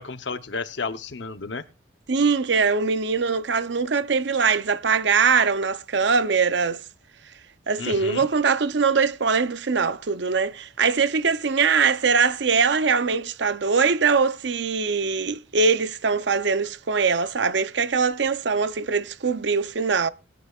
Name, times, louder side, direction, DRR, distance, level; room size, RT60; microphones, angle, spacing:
voice 1, 0.0-1.6 7.8-8.3, left 4 dB, 70° left, 0.8 m, -32 dB
voice 2, 2.1-6.8 7.7-20.1, right 5 dB, 65° right, 0.7 m, -22 dB
20.5 x 10.0 x 2.4 m
head